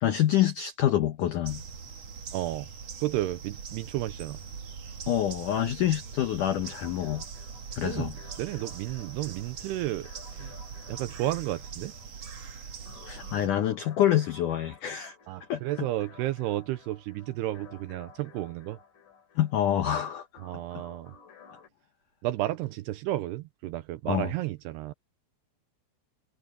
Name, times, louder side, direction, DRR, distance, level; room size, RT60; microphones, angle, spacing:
voice 1, 0.0-1.6 5.1-7.2 7.8-8.1 13.1-15.2 15.5-15.6 19.4-20.3 24.1-24.3, left 11 dB, 80° left, 1.8 m, -26 dB
sound 1, 1.4-13.5, right 6 dB, 50° right, 2.2 m, -42 dB
voice 2, 2.3-2.7 3.0-4.4 7.8-8.1 8.4-10.5 10.9-11.9 15.3-18.8 20.4-21.1 22.2-24.9, right 15 dB, 85° right, 2.4 m, -32 dB
sound 2, 6.5-21.7, left 6 dB, 45° left, 4.8 m, -54 dB
omnidirectional pair, 5.3 m